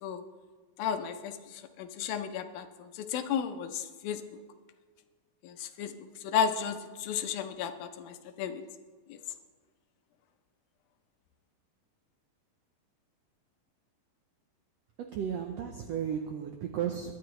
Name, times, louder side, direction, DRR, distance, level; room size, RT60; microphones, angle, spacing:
voice 1, 0.8-4.4 5.4-6.0 6.2-8.6 9.1-9.2, left 8 dB, 90° left, 8 dB, 2.7 m, -34 dB
voice 2, 15.0-17.1, right 8 dB, 85° right, 4 dB, 1.4 m, -34 dB
22.5 x 11.0 x 3.2 m, 1.5 s
omnidirectional pair, 4.1 m